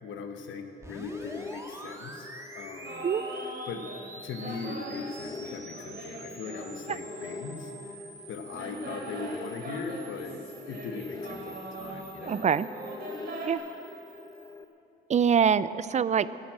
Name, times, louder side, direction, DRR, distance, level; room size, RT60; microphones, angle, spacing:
voice 1, 0.0-3.1 3.7-3.8 4.2-12.4, left 5 dB, 75° left, 6 dB, 1.3 m, -40 dB
sound 1, 0.8-14.7, right 1 dB, 15° right, 1.7 m, -48 dB
sound 2, 1.1-14.6, left 4 dB, 20° left, 0.5 m, -45 dB
sound 3, 2.8-4.1 4.4-8.0 8.5-13.5, right 2 dB, 55° right, 3.0 m, -42 dB
voice 2, 12.2-12.7 13.4-13.6 15.1-16.3, right 7 dB, 35° right, 17 dB, 0.4 m, -24 dB
14.5 x 11.0 x 7.5 m, 3.0 s
cardioid pair, 90°, 20 cm